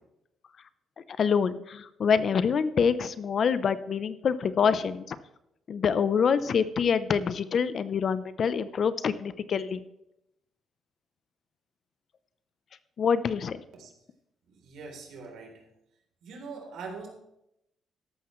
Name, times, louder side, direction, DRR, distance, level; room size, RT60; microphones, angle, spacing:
voice 1, 1.2-5.2 5.7-9.8 13.0-13.6, left 6 dB, 55° left, 14 dB, 0.7 m, -26 dB
voice 2, 14.4-15.7 16.2-17.1, right 4 dB, 80° right, 1 dB, 3.5 m, -42 dB
13.5 x 12.0 x 3.2 m, 0.83 s
cardioid pair, 90°, 0 cm